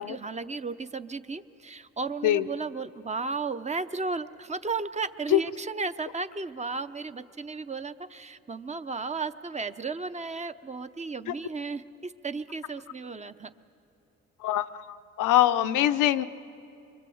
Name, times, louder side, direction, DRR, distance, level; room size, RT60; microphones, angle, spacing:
voice 1, 0.0-13.5, right 4 dB, 25° right, 11 dB, 0.7 m, -34 dB
voice 2, 14.4-16.2, left 13 dB, 85° left, 10 dB, 0.7 m, -24 dB
25.0 x 23.5 x 7.8 m, 2.6 s
cardioid pair, 90°, 30 cm